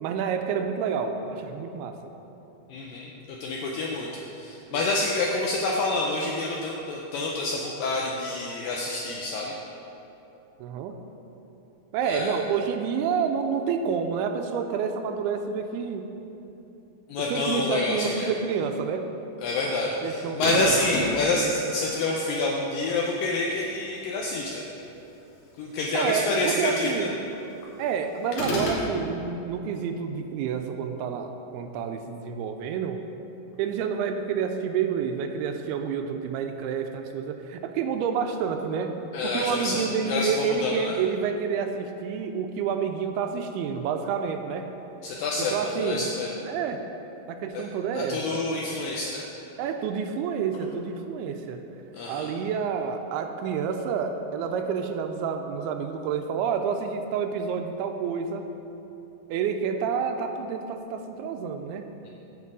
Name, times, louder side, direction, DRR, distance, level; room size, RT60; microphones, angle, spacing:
voice 1, 0.0-2.0 4.7-4.9 10.6-11.0 11.9-16.1 17.3-19.1 20.0-21.0 25.9-27.1 27.8-33.0 33.6-39.0 39.2-44.7 45.4-46.1 46.5-46.8 47.3-48.4 49.6-51.6 52.1-58.5 59.3-61.9, right 6 dB, 80° right, 6 dB, 2.4 m, -29 dB
voice 2, 2.7-3.1 3.4-9.5 12.0-12.4 17.1-18.3 19.4-24.6 25.6-27.1 39.1-41.0 45.0-46.4 47.5-47.6 47.9-49.2 51.9-52.3, left 2 dB, 80° left, -2 dB, 2.0 m, -28 dB
sound 1, 20.4-21.2 28.3-28.9, left 1 dB, 60° left, 2.2 m, -29 dB
8.2 x 5.3 x 7.4 m, 3.0 s
omnidirectional pair, 4.7 m